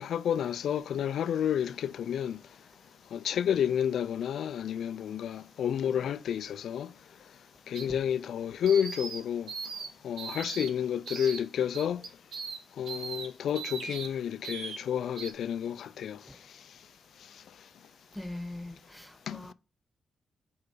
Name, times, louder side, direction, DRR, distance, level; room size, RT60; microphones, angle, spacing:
voice 1, 0.0-2.4 3.1-6.9 7.7-9.5 10.0-12.0 12.8-16.2 19.3-19.4, left 9 dB, 80° left, 0.3 m, -30 dB
sound 1, 7.7-7.9 8.7-9.2 9.5-9.9 10.2-10.7 11.1-11.4 11.7-12.6 12.9-13.3 13.6-14.1 14.4-14.8 15.2-15.3, right 5 dB, 80° right, 1.1 m, -38 dB
voice 2, 18.2-19.5, left 1 dB, ahead, 0.4 m, -41 dB
6.7 x 4.8 x 4.9 m
cardioid pair, 80°, 0 cm